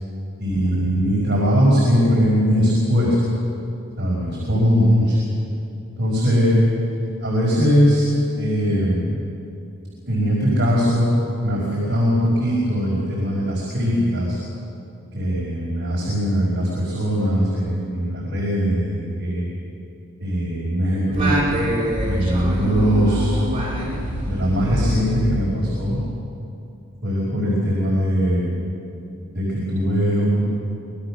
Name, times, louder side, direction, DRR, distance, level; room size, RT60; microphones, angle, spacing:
voice 1, 0.4-3.1 4.0-5.3 6.0-6.6 7.2-8.1 8.4-9.0 10.1-11.1 11.4-14.4 15.1-19.5 20.2-21.4 22.0-23.4 24.2-26.0 27.0-28.5 29.3-30.5, equal, 50° right, -5 dB, 5.0 m, -20 dB
Singing, 21.1-25.9, equal, 25° right, 5.3 m, -25 dB
24.5 x 22.0 x 6.3 m, 2.6 s
head